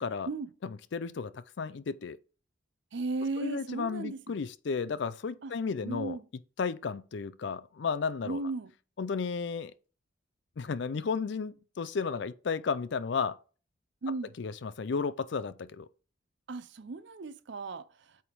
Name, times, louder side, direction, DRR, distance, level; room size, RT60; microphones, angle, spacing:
voice 1, 0.6-2.2 3.4-6.2 6.6-8.4 9.0-9.7 10.6-13.4 14.4-15.9, left 5 dB, 60° left, 0.4 m, -33 dB
voice 2, 2.9-4.2 5.4-5.5 5.8-6.2 8.2-8.7 14.0-14.3 16.5-18.2, right 3 dB, 60° right, 0.5 m, -36 dB
8.5 x 3.5 x 4.5 m
head